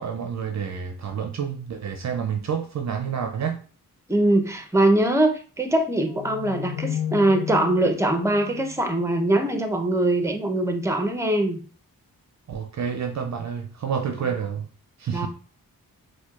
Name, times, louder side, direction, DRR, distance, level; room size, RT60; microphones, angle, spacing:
voice 1, 0.0-3.6 12.5-14.7 15.0-15.3, right 7 dB, 50° right, 0.5 m, -29 dB
voice 2, 4.1-11.6 15.1-15.3, right 1 dB, 10° right, 0.6 m, -22 dB
sound 1, 6.1-9.5, left 10 dB, 85° left, 0.7 m, -33 dB
4.3 x 2.3 x 2.4 m
cardioid pair, 55°, 36 cm